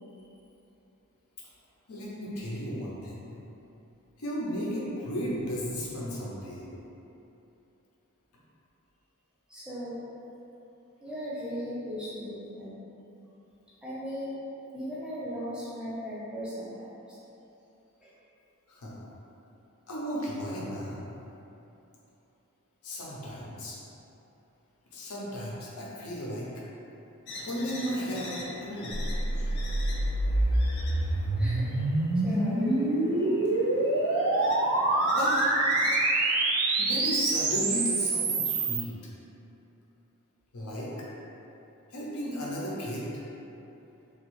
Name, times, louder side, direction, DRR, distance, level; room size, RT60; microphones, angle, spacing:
voice 1, 1.9-3.2 4.2-6.6 18.7-19.0 19.9-21.0 22.8-23.8 24.9-26.5 27.4-29.0 35.2-35.3 36.8-38.9 40.5-41.1 41.9-43.1, equal, 80° left, -5 dB, 0.7 m, -34 dB
voice 2, 9.5-10.0 11.0-12.8 13.8-14.4 14.7-17.2 18.0-18.1 31.4-31.7 32.2-33.5, equal, 5° right, -10 dB, 0.6 m, -37 dB
sound 1, 27.3-36.0, left 2 dB, 50° left, 0.3 m, -44 dB
sound 2, 28.9-38.8, right 2 dB, 80° right, 0.4 m, -26 dB
3.0 x 2.3 x 3.0 m, 2.9 s
head